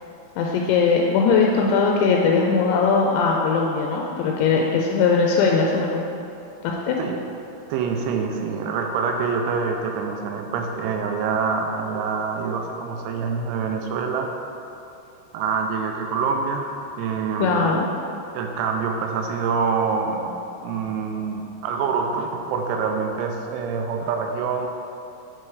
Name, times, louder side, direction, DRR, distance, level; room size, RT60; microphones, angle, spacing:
voice 1, 0.4-6.0 6.6-7.0 17.4-17.8, left 5 dB, 85° left, 0 dB, 2.9 m, -20 dB
voice 2, 7.7-14.3 15.3-17.7 18.3-24.7, right 5 dB, 85° right, 3 dB, 2.4 m, -26 dB
7.7 x 4.6 x 4.7 m, 2.7 s
omnidirectional pair, 5.3 m